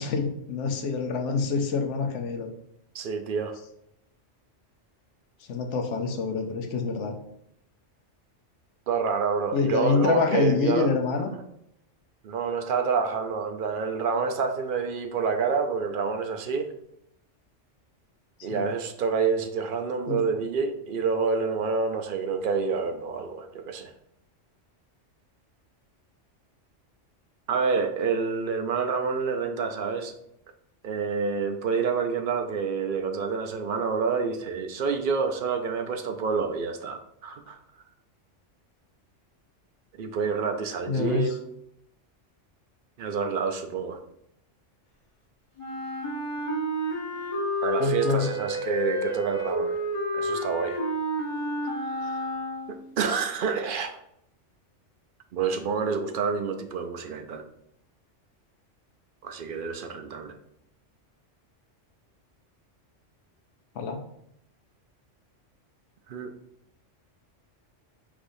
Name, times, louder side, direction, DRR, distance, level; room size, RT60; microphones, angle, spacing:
voice 1, 0.0-2.5 5.5-7.2 9.5-11.3 18.4-18.7 20.1-20.2 40.9-41.3 47.8-48.3 63.8-64.1, left 5 dB, 75° left, 4 dB, 1.0 m, -26 dB
voice 2, 2.9-3.6 8.9-11.0 12.2-16.7 18.4-23.9 27.5-30.1 30.8-37.6 40.0-41.4 43.0-44.0 47.6-49.8 50.1-50.8 51.8-52.2 52.7-54.0 55.3-57.4 59.2-60.3 66.1-66.3, right 5 dB, 60° right, 6 dB, 0.6 m, -28 dB
Wind instrument woodwind instrument, 45.6-52.9, equal, 30° left, 0.8 m, -30 dB
4.9 x 3.5 x 2.6 m, 0.75 s
omnidirectional pair, 1.3 m